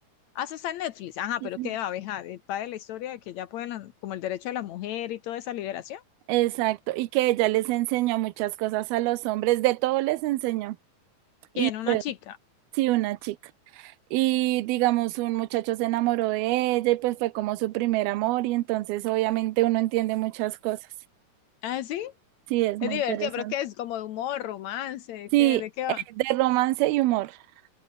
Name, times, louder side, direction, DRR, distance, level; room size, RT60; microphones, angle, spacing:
voice 1, 0.3-6.0 11.6-12.4 21.6-22.1 22.8-26.0, left 12 dB, 75° left, 1.7 m, -33 dB
voice 2, 6.3-10.8 11.6-12.0 12.7-13.4 13.8-20.8 22.5-23.5 25.3-25.6 26.2-27.4, right 17 dB, 85° right, 2.8 m, -25 dB
omnidirectional pair, 4.3 m